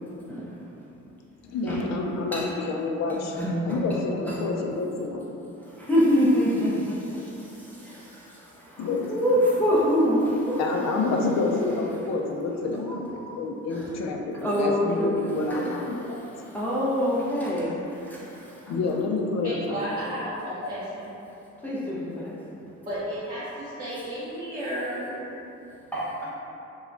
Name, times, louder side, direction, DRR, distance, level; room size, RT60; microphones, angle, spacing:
voice 1, 1.4-3.3 3.7-5.3 8.8-9.1 10.6-16.2 18.7-19.8 20.3-20.7, left 3 dB, 60° left, 1 dB, 0.4 m, -28 dB
voice 2, 3.1-4.0 4.3-4.4 5.6-10.6 12.9-13.4 13.7-13.9 14.4-15.7 16.1-18.7 21.6-22.4 25.9-26.3, equal, 5° left, -9 dB, 0.5 m, -26 dB
voice 3, 19.4-21.1 22.8-25.3, equal, 25° right, -12 dB, 0.7 m, -33 dB
2.2 x 2.1 x 3.7 m, 2.9 s
cardioid pair, 90°, 30 cm